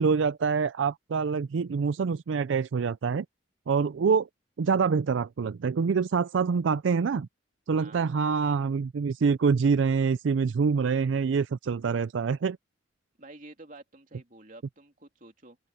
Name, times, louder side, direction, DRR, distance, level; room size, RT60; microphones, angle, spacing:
voice 1, 0.0-3.2 3.7-4.3 4.6-7.3 7.7-12.6, right 5 dB, 80° right, 0.4 m, -25 dB
voice 2, 13.2-15.6, right 2 dB, 45° right, 3.2 m, -49 dB
open air
head